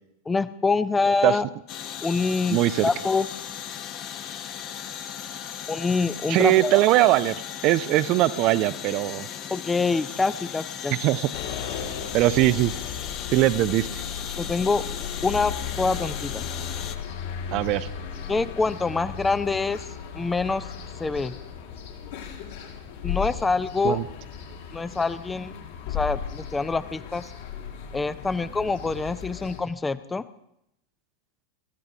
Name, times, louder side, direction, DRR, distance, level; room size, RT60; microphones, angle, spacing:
voice 1, 0.3-1.5 2.0-3.3 5.7-6.8 9.5-11.0 14.4-14.8 15.2-16.5 18.3-19.8 20.1-20.7 21.0-21.4 23.0-24.0 24.7-25.5 25.9-27.3 27.9-30.3, left 4 dB, 10° left, 15 dB, 0.6 m, -25 dB
sound 1, 1.7-16.9, left 9 dB, 35° left, 1.0 m, -37 dB
voice 2, 2.5-2.9 6.3-7.4 7.6-9.3 10.9-11.3 12.1-12.7 13.3-14.0 17.5-17.9 23.8-24.0, right 16 dB, 40° right, 14 dB, 0.6 m, -21 dB
sound 2, 11.3-29.6, left 7 dB, 55° left, 3.0 m, -36 dB
26.0 x 14.5 x 3.7 m, 0.80 s
figure-of-eight pair, 90°, 0 cm